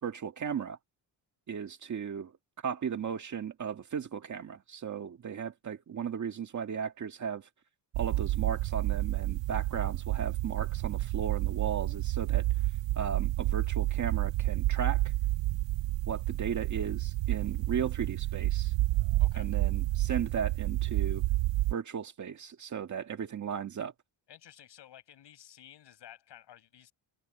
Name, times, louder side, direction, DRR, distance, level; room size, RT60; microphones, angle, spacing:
voice 1, 0.0-0.8 1.5-2.3 2.6-7.5 8.0-12.5 13.0-15.0 16.1-18.7 19.4-21.2 21.7-23.9, right 7 dB, 35° right, 1.9 m, -36 dB
sound 1, 7.9-21.7, right 17 dB, 65° right, 0.6 m, -30 dB
voice 2, 19.2-19.5 24.3-26.9, left 11 dB, 60° left, 6.5 m, -53 dB
cardioid pair, 160°, 47 cm